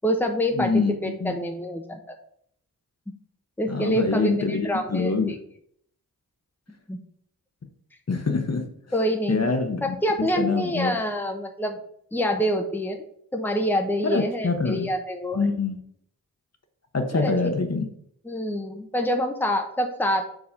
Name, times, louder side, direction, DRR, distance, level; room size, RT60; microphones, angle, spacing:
voice 1, 0.0-2.1 3.6-5.4 6.9-7.0 8.9-9.5 9.8-11.8 12.1-13.0 13.3-15.5 17.1-17.3 18.2-20.3, equal, 5° left, 4 dB, 0.9 m, -26 dB
voice 2, 0.5-1.4 3.7-5.3 8.1-8.7 9.3-10.0 10.4-11.0 14.0-14.9 15.3-15.8 16.9-17.8, left 4 dB, 40° left, 5 dB, 1.0 m, -25 dB
4.9 x 4.0 x 5.2 m, 0.67 s
cardioid pair, 40°, 37 cm